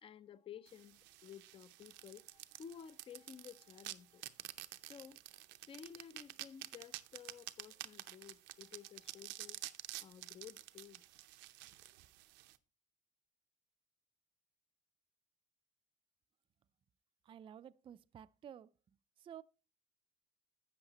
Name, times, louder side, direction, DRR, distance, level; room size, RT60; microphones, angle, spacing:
voice 1, 0.0-4.2 4.8-5.2 5.7-9.7 10.0-11.0, left 8 dB, 30° left, 0.4 m, -54 dB
sound 1, 0.7-12.6, right 16 dB, 80° right, 0.6 m, -50 dB
voice 2, 17.2-18.7 19.2-19.4, right 9 dB, 30° right, 0.3 m, -53 dB
12.0 x 8.0 x 2.9 m
cardioid pair, 125°, 18 cm